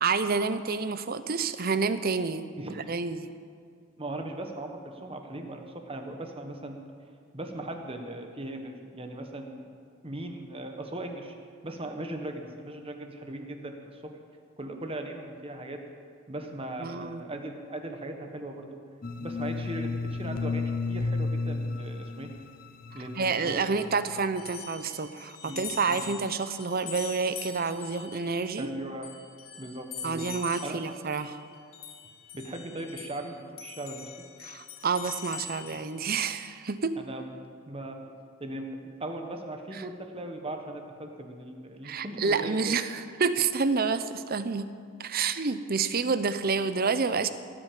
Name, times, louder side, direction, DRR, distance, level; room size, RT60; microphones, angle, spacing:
voice 1, 0.0-3.3 16.8-17.2 23.2-28.7 30.0-31.4 34.4-37.0 41.8-44.7 45.0-47.3, right 4 dB, 45° right, 12 dB, 0.7 m, -29 dB
voice 2, 2.6-2.9 4.0-6.8 7.3-9.7 10.0-11.3 11.6-14.2 14.6-15.8 16.3-18.8 19.2-22.3 22.9-23.6 25.4-26.1 28.6-29.2 29.6-30.2 30.6-30.8 32.3-34.1 37.0-37.3 37.7-38.0 38.4-42.8, right 1 dB, 25° right, 4 dB, 1.4 m, -38 dB
sound 1, 19.0-24.2, left 3 dB, 45° left, 0.6 m, -33 dB
sound 2, 24.4-33.3 33.6-35.9, left 7 dB, 80° left, 2.2 m, -43 dB
17.5 x 9.0 x 7.6 m, 2.2 s
head